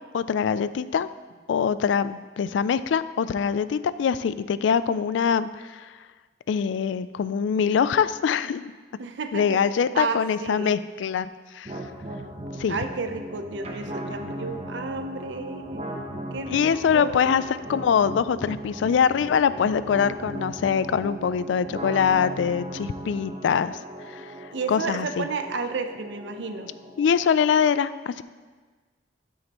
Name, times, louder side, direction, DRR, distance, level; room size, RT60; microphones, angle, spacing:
voice 1, 0.1-1.1 1.5-5.9 6.5-8.7 9.3-11.3 11.5-11.7 12.6-12.8 16.5-23.8 24.1-24.3 24.7-25.3 27.0-28.2, left 7 dB, 90° left, 15 dB, 0.3 m, -23 dB
voice 2, 9.0-9.6 9.9-10.8 12.7-15.8 16.3-17.3 24.5-26.7, right 4 dB, 80° right, 7 dB, 0.6 m, -32 dB
sound 1, 11.6-27.6, right 1 dB, 35° right, 0.9 m, -37 dB
12.5 x 6.4 x 3.0 m, 1.4 s
head